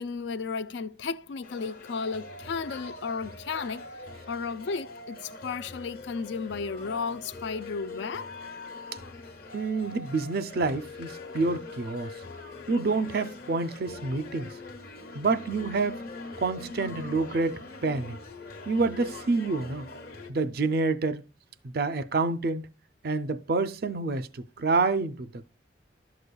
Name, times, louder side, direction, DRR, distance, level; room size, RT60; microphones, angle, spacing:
voice 1, 0.0-3.9 4.3-8.3, left 5 dB, 70° left, 0.4 m, -34 dB
sound 1, 1.4-20.3, left 3 dB, 50° left, 1.1 m, -43 dB
voice 2, 9.5-12.1 12.7-14.5 15.1-16.0 16.4-18.2 18.7-19.9 20.3-21.2 21.6-22.7 23.0-25.5, right 3 dB, 50° right, 0.5 m, -28 dB
12.0 x 6.8 x 2.3 m
head